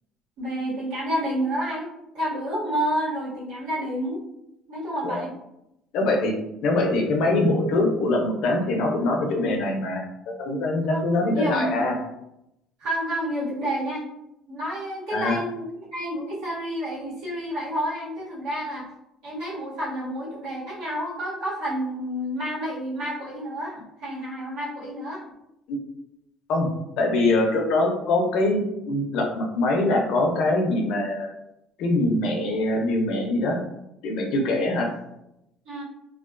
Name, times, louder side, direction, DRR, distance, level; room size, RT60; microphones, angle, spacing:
voice 1, 0.4-1.9 2.1-4.2 4.7-5.3 10.9-11.8 12.8-14.0 14.5-18.8 19.2-25.2 35.6-35.8, equal, 90° right, -7 dB, 1.2 m, -29 dB
voice 2, 5.9-6.3 6.6-11.9 15.1-15.4 25.7-25.8 26.5-26.7 27.0-31.3 31.8-33.6 34.0-34.9, left 2 dB, 70° left, 1 dB, 0.5 m, -23 dB
2.4 x 2.2 x 2.4 m, 0.85 s
cardioid pair, 120°, 0 cm